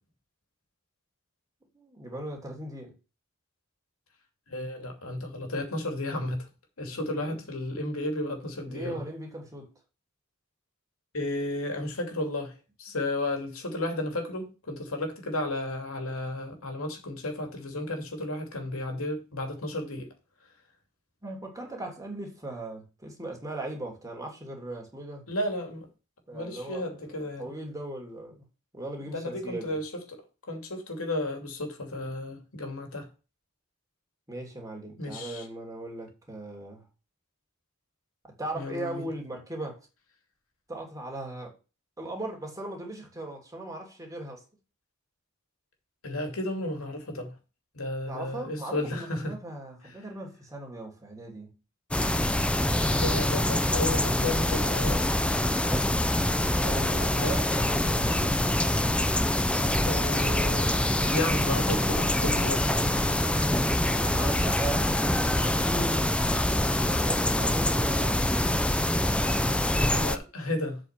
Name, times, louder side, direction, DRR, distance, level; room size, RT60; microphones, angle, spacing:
voice 1, 1.7-2.9 6.9-7.4 8.7-9.7 21.2-25.2 26.3-28.4 28.7-29.8 34.3-36.8 38.2-39.8 40.7-41.5 42.0-44.4 48.1-51.5 56.5-58.4 62.8-63.6 64.0-65.1 65.4-66.1 66.8-68.3 70.2-70.3, right 1 dB, 15° right, 3.0 m, -38 dB
voice 2, 4.5-6.5 6.8-9.0 11.1-12.5 12.8-20.1 25.3-25.9 26.3-27.5 29.1-33.1 35.0-35.4 38.5-39.0 46.0-47.3 47.7-49.3 52.7-55.0 56.6-57.3 59.8-60.7 61.0-62.7 69.7-70.8, left 1 dB, 90° left, 2.7 m, -33 dB
sound 1, 51.9-70.2, left 1 dB, 5° left, 0.6 m, -25 dB
8.0 x 5.1 x 5.9 m
head